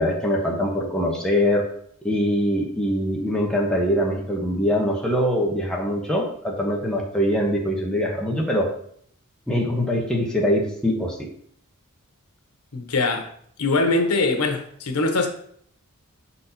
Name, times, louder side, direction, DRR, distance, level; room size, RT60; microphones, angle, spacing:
voice 1, 0.0-1.6 2.0-8.7 9.5-11.3, equal, 5° left, -1 dB, 1.2 m, -23 dB
voice 2, 12.7-13.3 13.6-15.3, left 3 dB, 90° left, 5 dB, 1.1 m, -22 dB
6.4 x 4.2 x 4.2 m, 0.64 s
head